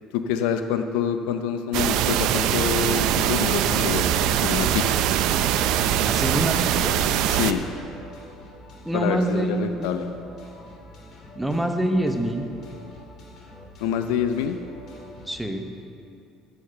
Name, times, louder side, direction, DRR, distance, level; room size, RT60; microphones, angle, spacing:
voice 1, 0.1-4.9 7.3-7.6 8.9-10.1 13.8-14.6, left 8 dB, 85° left, 8 dB, 0.5 m, -26 dB
sound 1, 1.7-7.5, right 10 dB, 70° right, 0.5 m, -22 dB
sound 2, 5.1-15.3, left 1 dB, 55° left, 2.4 m, -45 dB
voice 2, 6.1-7.3 8.8-9.9 11.3-12.5 15.2-15.7, right 1 dB, 5° right, 5 dB, 0.9 m, -26 dB
9.9 x 7.3 x 6.7 m, 2.6 s
cardioid pair, 110°, 0 cm